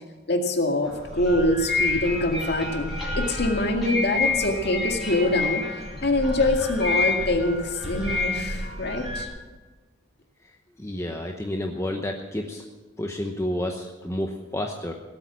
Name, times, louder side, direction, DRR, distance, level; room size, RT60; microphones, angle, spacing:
voice 1, 0.3-5.6 6.0-9.3, left 1 dB, 60° left, 3 dB, 2.1 m, -24 dB
sound 1, 0.8-9.3, left 3 dB, ahead, 4.1 m, -29 dB
voice 2, 10.8-12.6 13.0-14.9, left 1 dB, 15° left, 3 dB, 0.9 m, -30 dB
18.0 x 8.3 x 7.5 m, 1.3 s
head